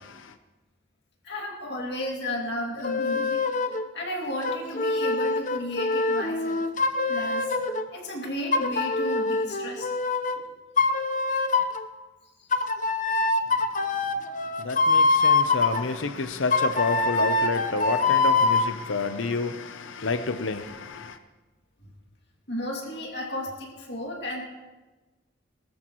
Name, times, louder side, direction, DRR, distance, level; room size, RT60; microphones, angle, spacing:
voice 1, 1.2-3.4 3.9-6.7 7.1-7.5 7.9-9.9 22.5-24.4, left 1 dB, 55° left, 2.4 m, -33 dB
sound 1, 2.8-3.8 4.4-7.8 8.5-10.4 10.8-11.8 12.5-15.8 16.5-18.7, left 3 dB, 40° left, 0.8 m, -24 dB
voice 2, 14.6-21.1, left 4 dB, 70° left, 0.7 m, -29 dB
20.0 x 13.5 x 3.1 m
head